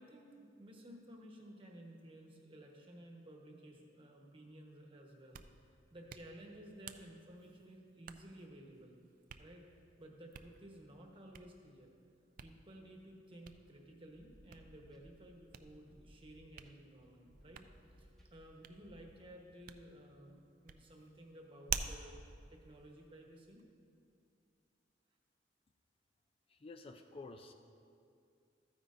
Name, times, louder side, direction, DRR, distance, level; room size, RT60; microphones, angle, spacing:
voice 1, 0.0-5.7 5.9-9.0 9.4-9.7 10.0-11.9 12.4-23.7, right 1 dB, 30° right, 1 dB, 1.1 m, -55 dB
Hands, 5.1-23.6, right 7 dB, 50° right, 0.4 m, -51 dB
sound 1, 14.1-19.3, equal, ahead, 1.0 m, -63 dB
voice 2, 26.5-27.5, left 3 dB, 30° left, 6 dB, 0.4 m, -51 dB
13.5 x 9.5 x 2.6 m, 2.4 s
head